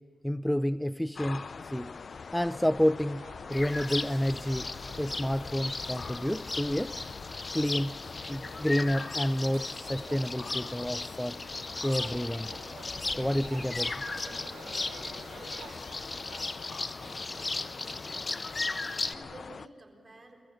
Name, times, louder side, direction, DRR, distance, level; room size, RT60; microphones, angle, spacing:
voice 1, 0.2-1.9 2.3-3.2 3.5-4.7 5.0-6.9 7.5-8.0 8.3-11.4 11.8-12.5 13.2-14.1, equal, 5° left, 14 dB, 0.4 m, -29 dB
sound 1, 1.2-19.7, left 5 dB, 60° left, 0.6 m, -43 dB
sound 2, 3.0-17.9, right 3 dB, 85° right, 6.3 m, -51 dB
sound 3, 3.5-19.1, left 3 dB, 35° left, 0.9 m, -37 dB
voice 2, 16.8-18.5 19.1-20.4, right 2 dB, 35° right, 3 dB, 4.0 m, -53 dB
23.0 x 14.5 x 7.9 m, 2.4 s
cardioid pair, 65°, 0 cm